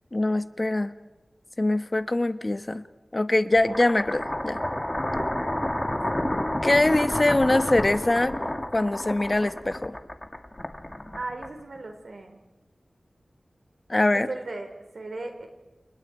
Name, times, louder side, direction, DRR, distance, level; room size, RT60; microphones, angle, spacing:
voice 1, 0.1-0.9 1.6-2.8 3.1-4.6 6.6-8.3 8.7-10.0 13.9-14.3, left 2 dB, 35° left, 10 dB, 1.3 m, -23 dB
sound 1, 3.6-11.8, left 1 dB, 15° left, 1.9 m, -30 dB
voice 2, 11.2-12.4 14.3-15.5, right 2 dB, 75° right, 4 dB, 4.5 m, -36 dB
29.5 x 29.0 x 4.6 m, 1.1 s
wide cardioid pair, 80°, 0 cm